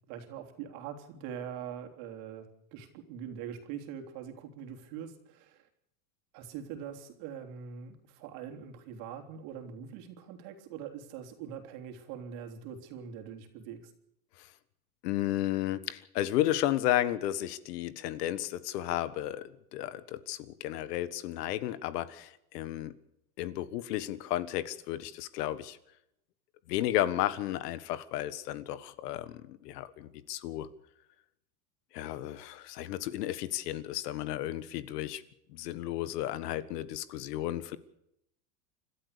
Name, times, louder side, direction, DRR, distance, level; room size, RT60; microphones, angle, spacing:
voice 1, 0.1-5.6 6.3-13.9, right 8 dB, 60° right, 5 dB, 3.5 m, -43 dB
voice 2, 15.0-22.9 23.4-25.8 26.7-30.7 31.9-35.2 35.5-37.8, left 13 dB, 70° left, 15 dB, 1.6 m, -33 dB
29.5 x 12.5 x 6.8 m, 0.79 s
supercardioid pair, 125°, 49 cm